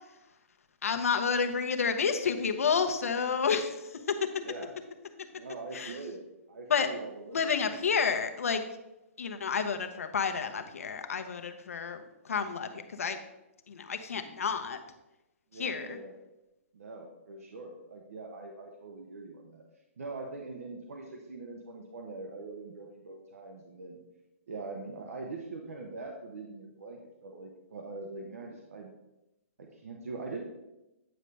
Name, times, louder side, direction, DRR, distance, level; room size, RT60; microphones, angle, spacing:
voice 1, 0.8-4.3 5.7-6.0 6.7-6.9 7.3-8.6 9.2-13.2 13.7-14.8 15.5-16.0, left 6 dB, 90° left, 7 dB, 0.9 m, -30 dB
voice 2, 4.4-4.8 5.3-7.4 15.5-16.2 16.7-19.6 20.0-24.0 24.5-28.9 29.6-30.4, right 3 dB, 85° right, 2 dB, 0.9 m, -43 dB
9.0 x 5.2 x 3.4 m, 0.96 s
hypercardioid pair, 160°, 7 cm